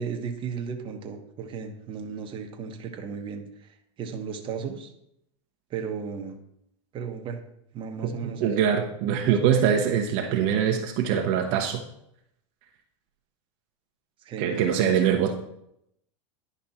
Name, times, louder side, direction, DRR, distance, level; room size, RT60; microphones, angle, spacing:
voice 1, 0.0-4.9 5.7-6.4 6.9-7.4 7.7-8.6 9.2-9.4 14.2-15.3, right 6 dB, 30° right, 3 dB, 1.2 m, -35 dB
voice 2, 8.0-11.8 14.4-15.3, right 8 dB, 50° right, 3 dB, 1.0 m, -23 dB
10.5 x 5.2 x 4.2 m, 0.76 s
supercardioid pair, 125°, 16 cm